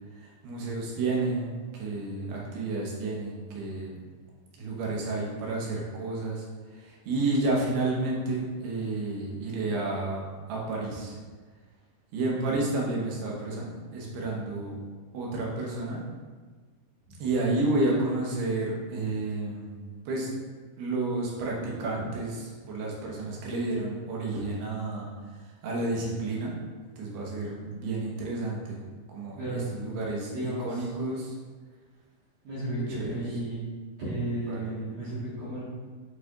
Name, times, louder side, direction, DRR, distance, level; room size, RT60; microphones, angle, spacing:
voice 1, 0.2-4.0 4.6-6.4 6.7-11.2 12.1-14.8 15.1-16.0 17.2-19.8 20.1-20.3 20.8-25.1 25.6-26.5 27.0-28.8 29.1-30.3 30.6-31.3 33.0-33.2 34.5-34.7 35.0-35.3, right 2 dB, 85° right, -3 dB, 3.3 m, -31 dB
voice 2, 12.2-12.6 29.4-29.7 30.3-30.7 32.4-33.6 34.0-35.6, right 1 dB, 60° right, -11 dB, 2.8 m, -33 dB
9.8 x 4.9 x 2.5 m, 1.4 s
omnidirectional pair, 4.6 m